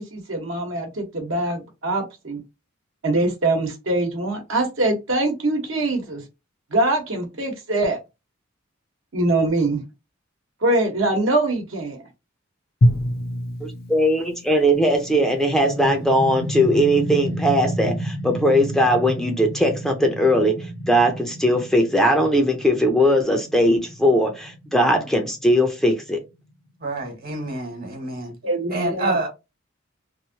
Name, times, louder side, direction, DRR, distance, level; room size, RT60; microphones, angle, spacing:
voice 1, 0.0-2.4 3.0-6.2 6.7-8.0 9.1-9.8 10.6-12.0 28.4-29.2, right 2 dB, 70° right, 1.1 m, -23 dB
Drum, 12.8-15.8, left 1 dB, 50° left, 0.5 m, -25 dB
voice 2, 13.6-26.2, equal, ahead, 0.5 m, -19 dB
sound 1, 14.7-26.2, right 1 dB, 70° left, 1.1 m, -32 dB
voice 3, 26.8-28.4 28.7-29.3, right 2 dB, 50° right, 1.3 m, -27 dB
3.1 x 2.6 x 2.7 m
head